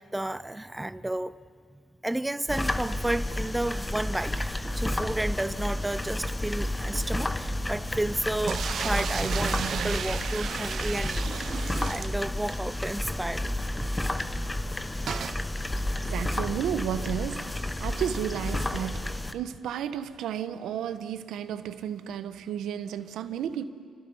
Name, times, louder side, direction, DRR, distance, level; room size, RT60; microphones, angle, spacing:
voice 1, 0.0-1.4 2.0-11.2 11.8-13.5, right 1 dB, 10° right, 0.7 m, -32 dB
sound 1, 2.5-19.3, left 1 dB, 15° left, 1.1 m, -31 dB
sound 2, 8.5-12.7 13.0-13.1 13.3-13.4 15.1-15.4, right 8 dB, 60° right, 0.6 m, -33 dB
voice 2, 16.0-23.7, right 9 dB, 80° right, 1.1 m, -33 dB
30.0 x 25.0 x 5.7 m
cardioid pair, 90°, 0 cm